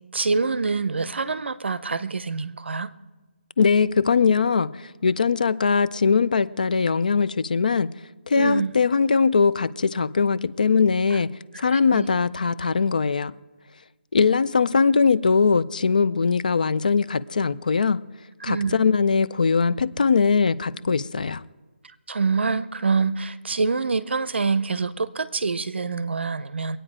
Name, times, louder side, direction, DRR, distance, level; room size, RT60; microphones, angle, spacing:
voice 1, 0.1-2.9 8.3-8.7 11.9-12.1 18.4-18.8 22.1-26.8, right 4 dB, 65° right, 0.7 m, -25 dB
voice 2, 3.6-7.9 8.3-11.3 11.6-13.3 14.1-18.0 18.4-21.4, left 5 dB, 40° left, 0.4 m, -21 dB
22.5 x 8.9 x 4.9 m
hypercardioid pair, 175°, 7 cm